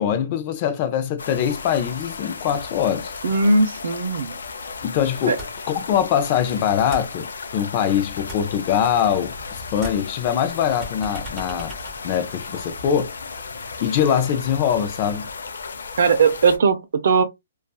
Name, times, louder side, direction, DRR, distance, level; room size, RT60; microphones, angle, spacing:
voice 1, 0.0-3.1 4.8-5.4 5.7-11.8 12.0-13.1 13.8-15.3, left 9 dB, 35° left, 0.5 m, -23 dB
sound 1, 1.2-16.6, left 4 dB, 85° left, 0.5 m, -35 dB
voice 2, 3.2-4.3 5.3-5.4 16.0-17.2, right 4 dB, 65° right, 0.5 m, -18 dB
sound 2, 5.4-5.8 6.0-7.8 8.1-9.5 9.7-12.8, right 1 dB, 5° right, 1.2 m, -39 dB
2.6 x 2.3 x 2.3 m
hypercardioid pair, 160°, 0 cm